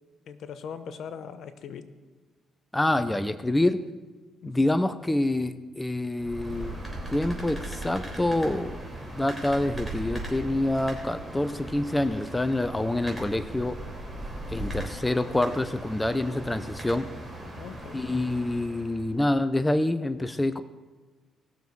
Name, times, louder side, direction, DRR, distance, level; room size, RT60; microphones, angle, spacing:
voice 1, 0.3-1.9 4.4-4.7 17.5-18.0, left 7 dB, 70° left, 11 dB, 0.9 m, -40 dB
voice 2, 2.7-3.8 4.4-6.8 7.1-8.8 9.1-13.8 14.5-17.1 17.9-20.6, left 1 dB, 10° left, 11 dB, 0.6 m, -26 dB
sound 1, 6.2-19.1, right 1 dB, 5° right, 3.5 m, -38 dB
19.0 x 6.9 x 4.7 m, 1.3 s
cardioid pair, 90°, 0 cm